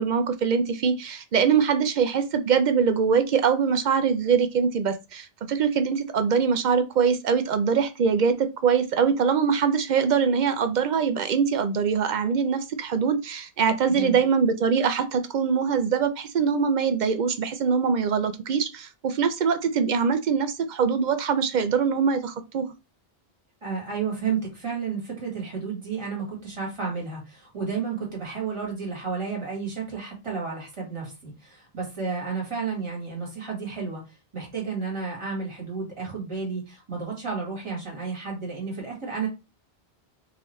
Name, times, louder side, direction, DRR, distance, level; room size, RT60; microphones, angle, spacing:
voice 1, 0.0-22.7, right 6 dB, 55° right, 0.6 m, -23 dB
voice 2, 13.9-14.2 23.6-39.3, right 5 dB, 30° right, 1.9 m, -32 dB
3.8 x 2.9 x 3.1 m
omnidirectional pair, 1.0 m